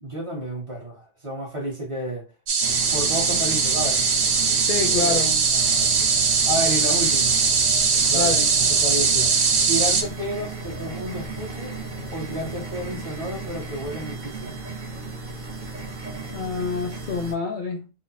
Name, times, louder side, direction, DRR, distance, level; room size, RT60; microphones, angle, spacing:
voice 1, 0.0-2.3 2.9-4.0 4.8-5.2 5.5-5.9 6.4-7.4 8.1-9.3 9.7-11.8 12.1-14.6, equal, 30° right, 1.1 m, -31 dB
sound 1, 2.5-10.0, right 5 dB, 80° right, 1.1 m, -20 dB
sound 2, 2.6-17.3, right 3 dB, 45° right, 0.8 m, -35 dB
voice 2, 4.6-5.4 8.1-8.5 16.3-17.9, left 4 dB, 55° left, 0.6 m, -27 dB
3.4 x 2.1 x 4.1 m
omnidirectional pair, 1.2 m